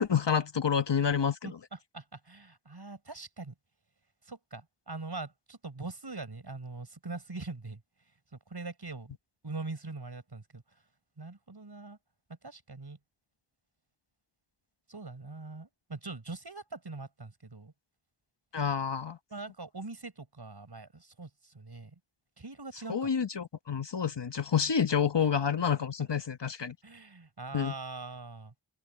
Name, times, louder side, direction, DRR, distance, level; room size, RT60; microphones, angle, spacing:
voice 1, 0.0-1.5 18.5-19.2 22.9-26.8 27.5-27.7, left 7 dB, 65° left, 1.4 m, -28 dB
voice 2, 1.4-3.5 4.2-7.8 8.3-9.2 9.4-10.6 11.2-12.0 12.4-13.0 14.9-17.7 19.3-21.9 22.4-23.1 26.8-28.5, right 3 dB, 60° right, 6.8 m, -42 dB
open air
wide cardioid pair, 55°, 45 cm